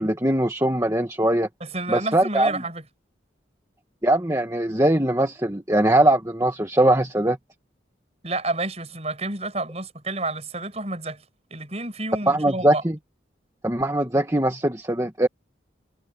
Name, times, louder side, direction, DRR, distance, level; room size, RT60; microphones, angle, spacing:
voice 1, 0.0-1.5 1.9-2.5 4.0-7.4 12.3-13.0 13.6-15.3, right 1 dB, 15° right, 1.9 m, -21 dB
voice 2, 1.6-2.8 8.2-11.2 11.5-12.8, right 2 dB, 35° right, 7.0 m, -30 dB
head